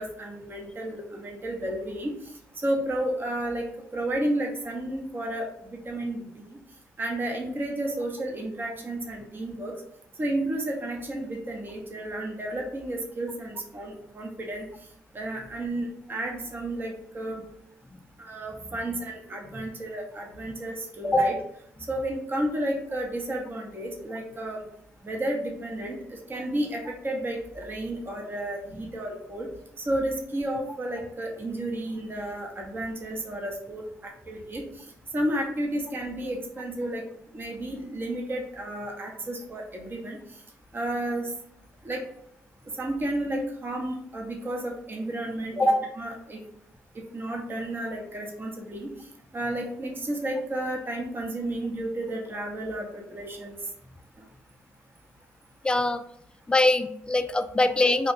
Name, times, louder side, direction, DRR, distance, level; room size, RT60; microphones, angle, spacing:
voice 1, 0.0-2.1 2.6-3.6 3.9-6.2 7.0-9.7 10.2-14.6 15.1-17.4 18.2-21.3 21.9-24.6 25.0-29.5 29.8-33.8 34.3-34.6 35.1-37.0 37.3-40.2 40.7-41.3 41.8-42.0 42.8-46.4 47.1-48.9 49.3-53.6, right 1 dB, 35° right, 1 dB, 0.9 m, -31 dB
voice 2, 55.6-56.0 56.5-58.1, left 2 dB, 15° left, 10 dB, 0.3 m, -24 dB
2.8 x 2.4 x 3.5 m, 0.73 s
supercardioid pair, 65°, 6 cm